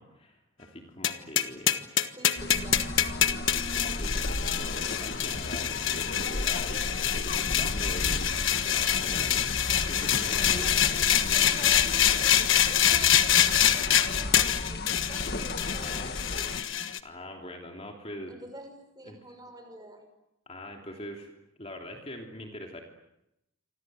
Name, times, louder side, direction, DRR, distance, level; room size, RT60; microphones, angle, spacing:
voice 1, 0.0-1.9 3.3-10.7 15.7-16.1 17.0-18.4 19.0-19.2 20.5-21.3 21.6-22.8, left 1 dB, 30° left, 2 dB, 3.2 m, -43 dB
sound 1, 1.0-17.0, left 10 dB, 65° left, 1.4 m, -25 dB
voice 2, 2.2-2.9 10.0-16.6 18.3-20.1, right 1 dB, 20° right, 6 dB, 6.2 m, -47 dB
sound 2, 2.4-16.6, left 2 dB, 50° left, 1.9 m, -35 dB
28.0 x 25.5 x 7.8 m, 0.85 s
head